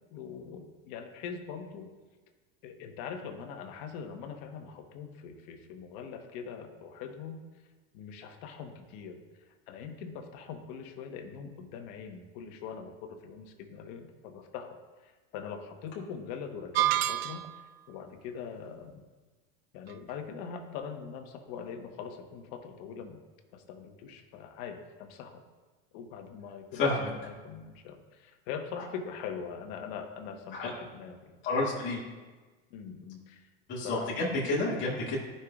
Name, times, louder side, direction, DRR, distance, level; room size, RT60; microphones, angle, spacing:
voice 1, 0.1-1.9 2.6-7.4 7.9-14.8 15.0-17.5 17.9-19.0 19.7-23.2 23.5-25.4 25.9-31.4 32.7-33.5 33.8-34.1, left 6 dB, 60° left, 5 dB, 1.2 m, -42 dB
sound 1, 16.7-17.7, right 14 dB, 90° right, 0.5 m, -28 dB
voice 2, 26.8-27.1 30.5-30.7 31.4-32.0 33.7-35.2, left 2 dB, 40° left, -6 dB, 2.2 m, -29 dB
15.0 x 5.7 x 2.4 m, 1.3 s
supercardioid pair, 115°, 29 cm